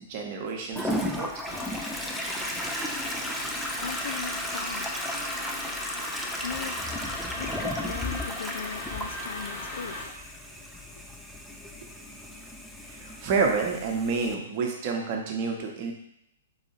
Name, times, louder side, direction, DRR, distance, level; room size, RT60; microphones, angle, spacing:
voice 1, 0.1-1.3 11.8-11.9 12.8-15.9, right 4 dB, 45° right, 0.9 m, -29 dB
Toilet flush, 0.7-14.3, equal, ahead, 0.4 m, -35 dB
sound 1, 1.5-10.0, left 2 dB, 25° left, 1.1 m, -38 dB
voice 2, 3.5-10.9, left 6 dB, 65° left, 0.3 m, -41 dB
4.0 x 2.7 x 4.2 m
figure-of-eight pair, 115°, 0 cm